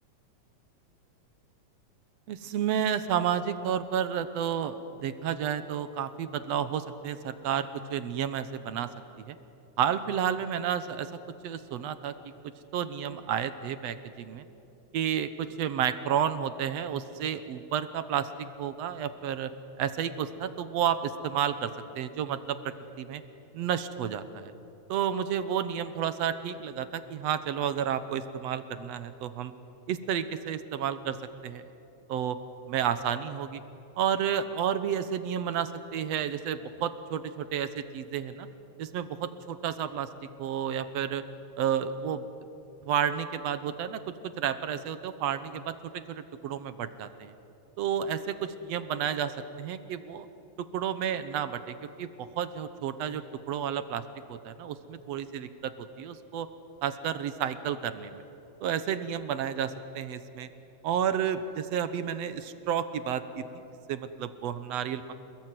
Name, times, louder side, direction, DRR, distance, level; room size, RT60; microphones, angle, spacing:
voice 1, 2.3-8.9 9.2-9.4 9.8-11.1 11.4-12.1 12.7-14.4 14.9-18.3 18.6-19.5 19.8-23.2 23.5-24.5 24.9-29.5 29.9-31.2 31.4-31.7 32.1-32.4 32.7-33.6 34.0-38.5 38.8-40.1 40.4-41.2 41.6-42.3 42.9-44.0 44.4-47.3 47.8-50.3 50.6-54.0 54.3-56.5 56.8-58.2 58.6-60.5 60.8-63.6 63.9-65.1, right 9 dB, 70° right, 12 dB, 2.0 m, -31 dB
28.0 x 20.5 x 9.4 m, 2.9 s
omnidirectional pair, 3.4 m